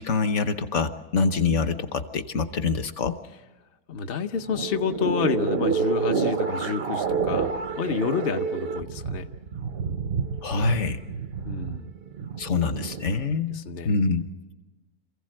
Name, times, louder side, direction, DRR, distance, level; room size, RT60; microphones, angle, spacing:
voice 1, 0.0-3.2 10.4-11.0 12.4-14.3, left 4 dB, 55° left, 10 dB, 0.9 m, -25 dB
voice 2, 3.9-9.3 11.4-11.9 13.5-13.9, left 6 dB, 70° left, 5 dB, 0.5 m, -29 dB
sound 1, 4.3-13.1, right 5 dB, 60° right, 0.6 m, -28 dB
27.0 x 15.5 x 7.7 m, 1.1 s
omnidirectional pair, 2.1 m